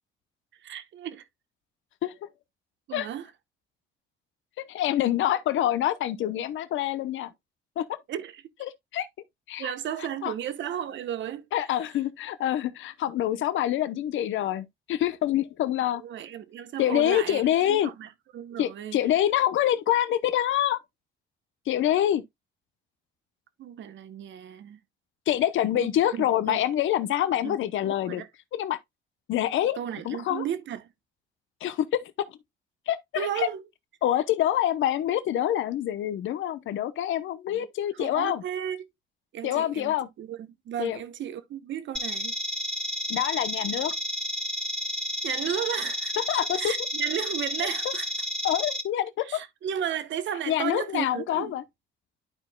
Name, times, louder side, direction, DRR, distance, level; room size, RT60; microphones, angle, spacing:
voice 1, 0.6-1.3 2.9-3.3 8.1-8.4 9.6-11.5 15.9-17.4 17.7-19.0 23.6-24.8 25.8-26.6 27.4-27.6 27.9-28.3 29.8-30.9 33.2-33.6 37.5-37.7 37.9-38.9 39.3-42.3 45.2-46.1 46.6-48.3 49.2-51.6, right 10 dB, 70° right, 0.9 m, -34 dB
voice 2, 4.7-7.3 7.8-7.9 8.6-9.1 9.5-9.7 10.2-10.3 11.5-16.0 16.8-17.9 18.6-20.8 21.7-22.2 25.3-28.2 28.5-28.8 29.3-29.8 30.0-30.4 31.6-32.0 32.9-33.5 34.0-38.4 39.4-40.1 40.8-41.0 43.1-43.9 46.3-46.7 48.4-49.4 50.5-51.6, left 12 dB, 75° left, 0.8 m, -26 dB
sound 1, 41.9-48.8, equal, 5° left, 1.8 m, -31 dB
11.5 x 4.5 x 2.2 m
cardioid pair, 90°, 20 cm